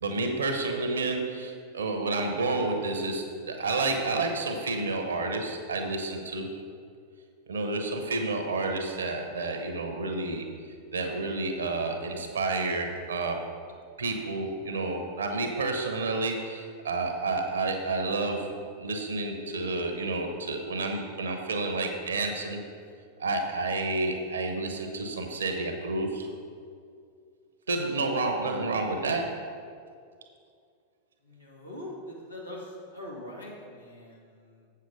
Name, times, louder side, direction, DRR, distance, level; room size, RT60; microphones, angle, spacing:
voice 1, 0.0-6.5 7.5-10.5 10.9-13.6 14.0-18.5 18.8-22.6 23.2-26.3 27.7-29.5, right 3 dB, 70° right, 4 dB, 1.0 m, -30 dB
voice 2, 31.2-34.7, left 1 dB, 90° left, -4 dB, 2.0 m, -42 dB
8.0 x 6.9 x 4.9 m, 2.3 s
figure-of-eight pair, 90°, 0 cm